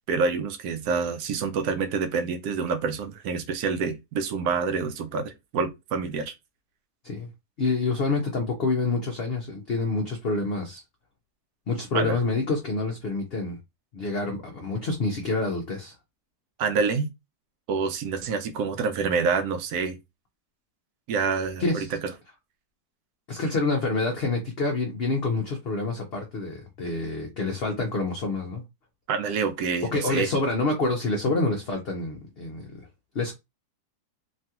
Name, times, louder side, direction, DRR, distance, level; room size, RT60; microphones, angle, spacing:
voice 1, 0.1-6.3 11.9-12.2 16.6-17.1 17.7-20.0 21.1-22.1 29.1-30.3, right 5 dB, 75° right, 1.1 m, -27 dB
voice 2, 7.6-10.8 11.7-13.6 13.9-15.9 21.6-21.9 23.3-28.6 29.8-32.9 33.1-33.3, left 3 dB, 60° left, 0.6 m, -27 dB
3.1 x 2.3 x 2.8 m
omnidirectional pair, 1.8 m